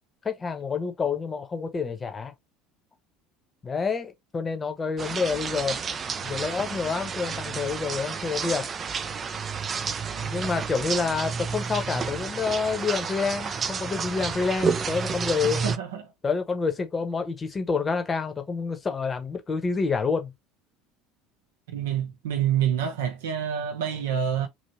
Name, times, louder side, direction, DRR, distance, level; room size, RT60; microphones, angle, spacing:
voice 1, 0.2-2.3 3.6-5.8 6.2-8.7 10.2-15.6 16.2-20.3, left 5 dB, 25° left, 0.9 m, -28 dB
sound 1, 5.0-15.8, right 5 dB, 30° right, 0.4 m, -31 dB
voice 2, 15.6-16.0 21.7-24.5, right 9 dB, 65° right, 0.7 m, -27 dB
3.0 x 2.8 x 2.7 m
figure-of-eight pair, 65°, 0 cm